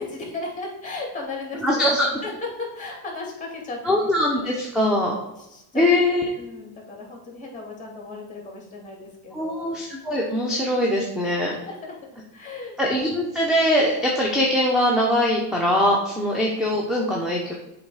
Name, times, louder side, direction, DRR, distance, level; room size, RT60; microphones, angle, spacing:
voice 1, 0.0-1.9 2.2-4.1 4.4-4.5 5.4-5.9 6.4-9.7 11.2-11.9 12.3-12.8 13.1-13.2, left 3 dB, 15° left, 0 dB, 2.6 m, -35 dB
voice 2, 1.6-2.1 3.8-5.1 5.7-6.3 9.3-11.6 12.8-17.5, left 1 dB, ahead, -2 dB, 0.9 m, -22 dB
7.7 x 3.7 x 5.0 m, 0.90 s
cardioid pair, 125°, 48 cm